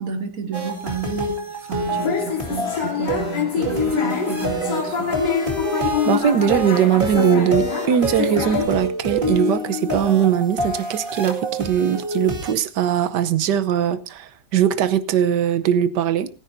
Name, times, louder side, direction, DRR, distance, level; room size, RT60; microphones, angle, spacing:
voice 1, 0.0-5.1, right 5 dB, 50° right, 2.4 m, -31 dB
sound 1, 0.5-12.5, equal, 30° right, 2.3 m, -26 dB
sound 2, 1.9-8.7, left 6 dB, 70° left, 3.3 m, -26 dB
voice 2, 6.0-16.3, right 9 dB, 70° right, 1.4 m, -20 dB
27.5 x 10.0 x 2.7 m
omnidirectional pair, 2.0 m